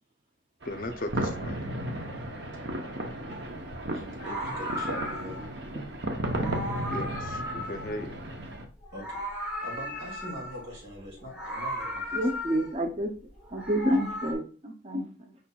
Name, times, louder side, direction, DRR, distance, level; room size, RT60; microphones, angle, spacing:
voice 1, 0.6-1.7 6.9-8.2, left 1 dB, 45° left, 0.5 m, -37 dB
sound 1, 0.6-8.6, right 1 dB, 65° right, 0.8 m, -34 dB
Meow, 3.3-3.5 4.1-5.6 6.3-8.5 8.8-10.7 11.3-12.8 13.4-14.3, equal, 10° right, 1.4 m, -36 dB
voice 2, 3.9-5.4 8.9-12.2, left 1 dB, 85° right, 2.2 m, -42 dB
voice 3, 12.1-13.1 13.5-15.4, equal, 30° right, 0.5 m, -29 dB
4.9 x 4.3 x 2.3 m
head